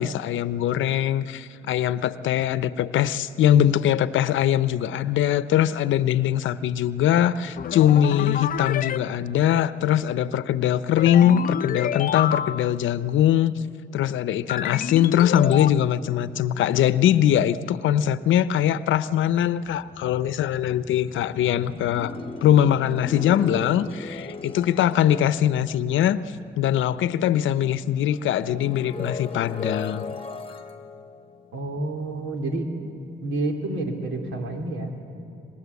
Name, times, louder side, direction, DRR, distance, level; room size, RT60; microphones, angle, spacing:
voice 1, 0.0-13.5 13.9-22.2 22.4-26.2 26.6-30.1, left 10 dB, 75° left, 15 dB, 0.8 m, -22 dB
sound 1, 7.6-9.0 11.0-12.8 14.5-15.7, left 9 dB, 45° left, 0.6 m, -28 dB
sound 2, 19.4-27.0 27.3-32.5, left 4 dB, 25° left, 1.2 m, -38 dB
voice 2, 31.5-32.8 33.2-35.0, right 2 dB, 80° right, 3 dB, 3.1 m, -29 dB
24.5 x 20.5 x 8.3 m, 2.6 s
cardioid pair, 90°, 20 cm